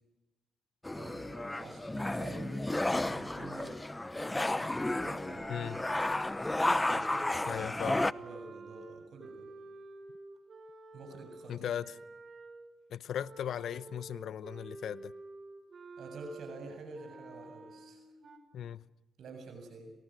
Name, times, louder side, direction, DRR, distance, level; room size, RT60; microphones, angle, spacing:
sound 1, 0.8-8.1, left 2 dB, 15° left, 0.9 m, -32 dB
voice 1, 1.0-3.8 4.6-5.4 6.8-7.6 8.1-9.5 10.9-11.7 16.0-18.0 19.2-19.9, right 3 dB, 75° right, 7.3 m, -48 dB
sound 2, 2.9-12.7 13.2-18.4, right 3 dB, 55° right, 5.5 m, -51 dB
voice 2, 5.5-5.8 7.5-8.1 11.5-12.0 12.9-15.1 18.5-18.8, left 9 dB, 75° left, 0.8 m, -37 dB
30.0 x 26.5 x 6.4 m
cardioid pair, 70°, 0 cm